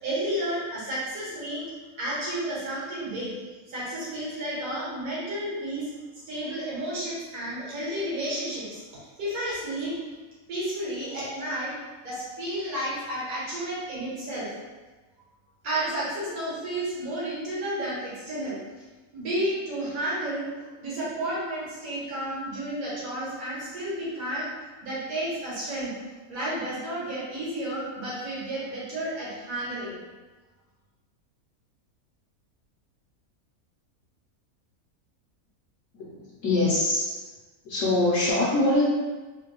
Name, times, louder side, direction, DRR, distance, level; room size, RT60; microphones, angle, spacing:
voice 1, 0.0-1.7 2.0-3.3 3.7-5.9 6.3-10.0 10.5-11.7 12.0-14.5 15.6-18.6 19.1-24.5 24.8-25.9 26.3-30.0, right 1 dB, 80° right, -8 dB, 1.6 m, -32 dB
voice 2, 35.9-37.3 37.6-38.8, left 2 dB, 65° left, -8 dB, 1.0 m, -24 dB
3.3 x 2.2 x 2.9 m, 1.3 s
omnidirectional pair, 1.5 m